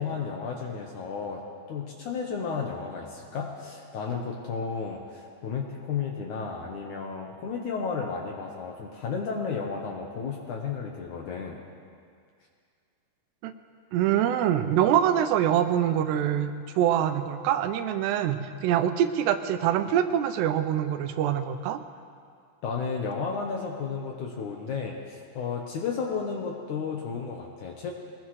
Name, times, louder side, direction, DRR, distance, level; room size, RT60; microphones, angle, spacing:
voice 1, 0.0-1.4 1.7-11.6 22.6-27.9, left 5 dB, 70° left, 0 dB, 2.0 m, -33 dB
voice 2, 13.9-21.8, right 10 dB, 90° right, 9 dB, 2.9 m, -24 dB
22.5 x 19.5 x 3.2 m, 2.2 s
omnidirectional pair, 4.7 m